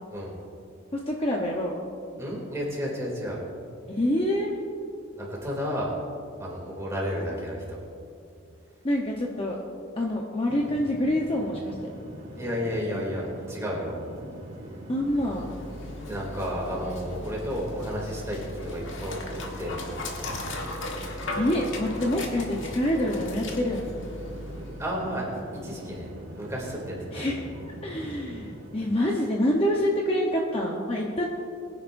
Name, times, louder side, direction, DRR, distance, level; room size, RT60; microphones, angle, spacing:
voice 1, 0.9-1.7 3.9-4.5 8.8-9.6 10.0-11.9 14.9-15.6 19.3-19.4 20.2-20.4 21.3-23.9 27.1-31.3, left 1 dB, 25° left, -1 dB, 0.9 m, -27 dB
voice 2, 2.2-3.4 5.2-5.9 6.4-7.8 12.3-14.1 16.1-19.8 24.8-26.1 26.3-27.3 28.0-28.2, equal, 15° right, -4 dB, 2.8 m, -32 dB
sound 1, 10.5-29.0, right 1 dB, 55° right, 2.4 m, -42 dB
Dog, 15.0-24.9, left 2 dB, 65° left, 1.6 m, -37 dB
22.0 x 10.0 x 2.6 m, 2.4 s
head